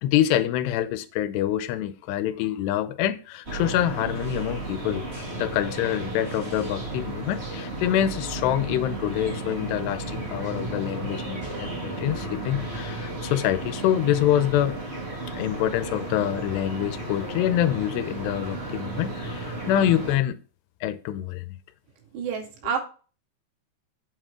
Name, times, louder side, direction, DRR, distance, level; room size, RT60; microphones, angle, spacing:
voice 1, 0.0-5.1 5.4-14.8 15.3-20.4 20.8-21.6, left 11 dB, 85° left, 2.8 m, -26 dB
sound 1, 3.5-20.2, right 2 dB, 20° right, 1.8 m, -33 dB
voice 2, 22.1-22.8, right 7 dB, 85° right, 4.6 m, -28 dB
8.2 x 7.5 x 3.7 m
omnidirectional pair, 4.8 m